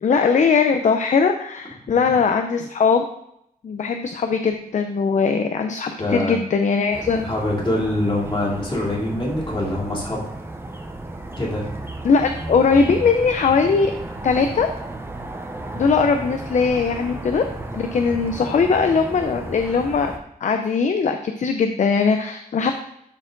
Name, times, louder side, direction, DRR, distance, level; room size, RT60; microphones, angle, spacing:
voice 1, 0.0-3.0 3.6-7.2 12.0-13.9 14.2-14.7 15.7-17.4 17.7-20.1 20.4-22.8, left 5 dB, 50° left, 6 dB, 0.5 m, -20 dB
voice 2, 6.0-6.4 7.2-10.4 11.4-11.7, left 1 dB, 30° left, -5 dB, 2.8 m, -24 dB
sound 1, 6.9-20.2, right 2 dB, 15° right, 0.8 m, -34 dB
12.0 x 4.4 x 3.8 m, 0.76 s
wide cardioid pair, 180°, 16 cm